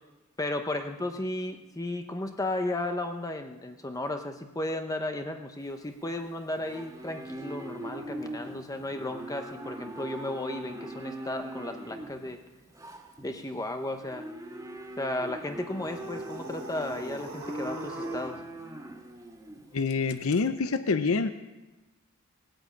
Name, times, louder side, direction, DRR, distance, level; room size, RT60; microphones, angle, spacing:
voice 1, 0.4-12.4 13.2-14.3 15.0-18.4, left 1 dB, 15° left, 5 dB, 0.8 m, -34 dB
Livestock farm animals working animals, 5.6-20.3, right 1 dB, 15° right, 1.7 m, -41 dB
sound 1, 15.8-18.4, right 2 dB, 85° right, 2.6 m, -43 dB
voice 2, 19.7-21.3, left 4 dB, 65° left, 10 dB, 0.7 m, -26 dB
18.0 x 9.1 x 8.4 m, 1.1 s
head